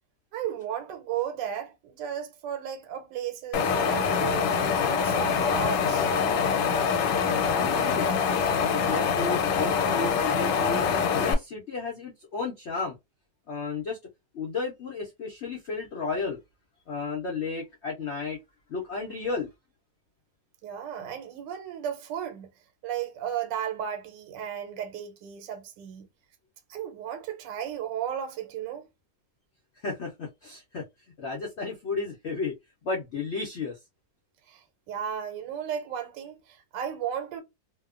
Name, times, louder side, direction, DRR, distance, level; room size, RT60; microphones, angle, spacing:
voice 1, 0.3-4.5 4.8-6.1 20.6-22.5 22.8-26.1 26.7-28.9 34.5-37.4, right 9 dB, 85° right, 1.3 m, -34 dB
Wind, 3.5-11.3, left 6 dB, 85° left, 1.2 m, -25 dB
voice 2, 7.2-8.1 8.5-10.9 11.2-13.0 13.5-14.0 14.3-16.4 16.9-18.4 18.7-19.5 29.8-30.8 31.2-32.5 32.8-33.8, left 4 dB, 65° left, 0.7 m, -33 dB
2.8 x 2.1 x 2.4 m
omnidirectional pair, 1.9 m